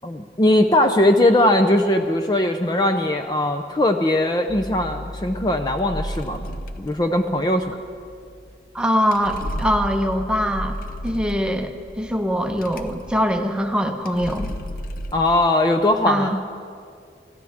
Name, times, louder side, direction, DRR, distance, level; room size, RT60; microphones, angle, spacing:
voice 1, 0.0-6.5 6.8-7.6 15.1-16.4, left 1 dB, 25° left, 5 dB, 0.5 m, -19 dB
sound 1, 4.5-15.3, equal, 50° left, 0.8 m, -33 dB
voice 2, 8.7-10.8 11.0-11.7 12.0-14.5 16.0-16.4, equal, 5° right, 4 dB, 0.8 m, -22 dB
23.5 x 14.0 x 3.6 m, 2.3 s
head